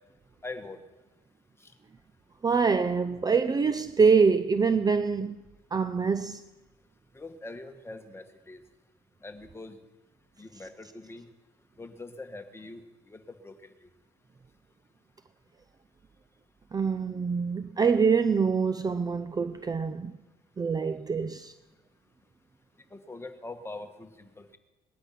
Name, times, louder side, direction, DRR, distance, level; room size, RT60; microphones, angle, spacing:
voice 1, 0.4-0.8 7.1-8.6 9.2-9.8 10.4-11.3 11.8-13.5 13.8-13.9 22.9-24.6, left 2 dB, 15° left, 1.7 m, -43 dB
voice 2, 2.4-5.4 5.7-6.4 16.7-20.2 20.6-21.5, right 5 dB, 25° right, 0.6 m, -25 dB
19.5 x 11.5 x 5.9 m
cardioid pair, 110°, 17 cm